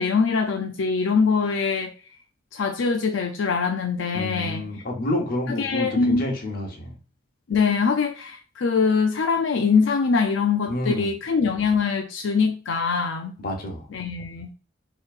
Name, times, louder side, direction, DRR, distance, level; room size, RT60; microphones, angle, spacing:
voice 1, 0.0-1.9 2.5-4.8 5.5-6.3 7.5-13.4 13.9-14.5, left 5 dB, 80° left, 4 dB, 0.5 m, -23 dB
voice 2, 4.1-6.9 10.7-11.1 13.4-13.8, left 1 dB, 50° left, 1 dB, 1.0 m, -28 dB
4.6 x 3.0 x 2.5 m, 0.37 s
head